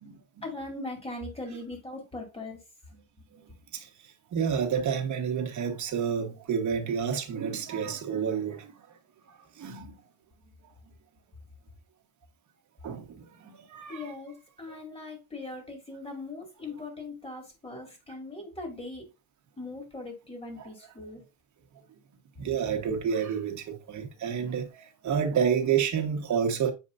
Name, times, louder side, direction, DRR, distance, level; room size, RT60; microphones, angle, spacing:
voice 1, 0.4-2.6 13.9-19.1 19.6-21.2, left 2 dB, 15° left, 2.4 m, -40 dB
voice 2, 4.3-8.7 9.6-10.0 12.8-13.1 13.5-14.0 20.6-20.7 22.4-24.7 25.0-26.7, right 7 dB, 45° right, 1.4 m, -29 dB
7.9 x 4.9 x 2.6 m
cardioid pair, 130°, 42 cm